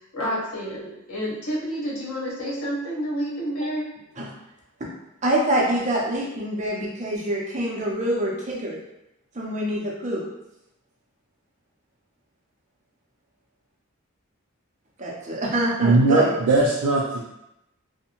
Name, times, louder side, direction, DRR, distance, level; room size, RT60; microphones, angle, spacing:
voice 1, 0.1-4.0, equal, 75° left, -6 dB, 1.0 m, -29 dB
voice 2, 5.2-8.8 9.4-10.2 15.0-16.3, right 1 dB, 35° right, -4 dB, 0.6 m, -25 dB
voice 3, 15.8-17.3, right 2 dB, 85° right, -4 dB, 0.4 m, -20 dB
2.6 x 2.1 x 2.9 m, 0.88 s
head